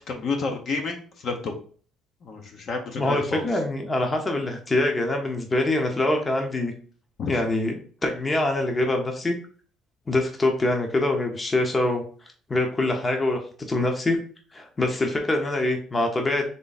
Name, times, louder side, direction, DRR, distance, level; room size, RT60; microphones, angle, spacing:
voice 1, 0.1-1.5 2.2-3.4 7.2-7.3, left 4 dB, 50° left, 3 dB, 1.0 m, -30 dB
voice 2, 3.0-6.7 7.3-9.3 10.1-12.0 12.5-13.4 13.7-14.2 14.5-16.4, left 2 dB, 20° left, 3 dB, 0.9 m, -24 dB
3.7 x 3.3 x 4.1 m, 0.43 s
cardioid pair, 110°, 0 cm